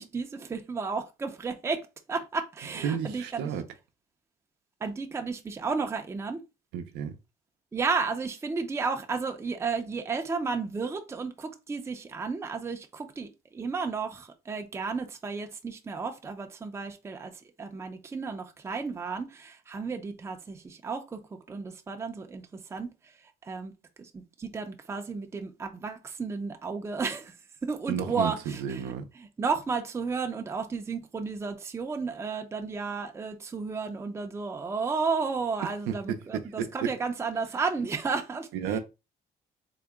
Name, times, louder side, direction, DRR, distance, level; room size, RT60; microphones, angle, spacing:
voice 1, 0.0-1.8 2.1-3.5 4.8-6.4 7.7-17.3 17.6-21.2 21.5-22.4 22.7-22.9 23.4-23.7 24.0-27.3 27.6-28.8 29.2-38.8, right 4 dB, 15° right, 0.5 m, -33 dB
voice 2, 2.8-3.6 6.7-7.2 27.9-29.0 35.6-36.9 38.5-38.8, right 8 dB, 90° right, 0.5 m, -32 dB
3.8 x 2.1 x 3.4 m
cardioid pair, 110°, 17 cm